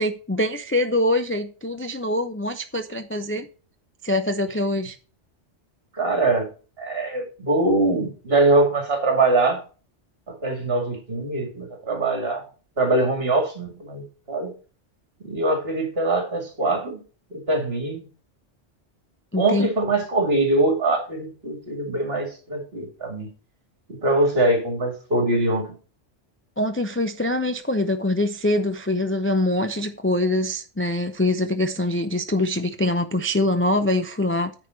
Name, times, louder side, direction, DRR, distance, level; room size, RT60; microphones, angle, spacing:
voice 1, 0.0-3.5 4.0-5.0 19.3-19.7 26.6-34.5, left 1 dB, 15° left, 0.6 m, -24 dB
voice 2, 6.0-6.5 6.8-9.6 10.3-12.4 12.8-14.5 15.2-17.0 17.3-18.0 19.4-23.3 23.9-25.7, right 2 dB, 55° right, 2.7 m, -23 dB
9.6 x 4.9 x 6.3 m
omnidirectional pair, 1.2 m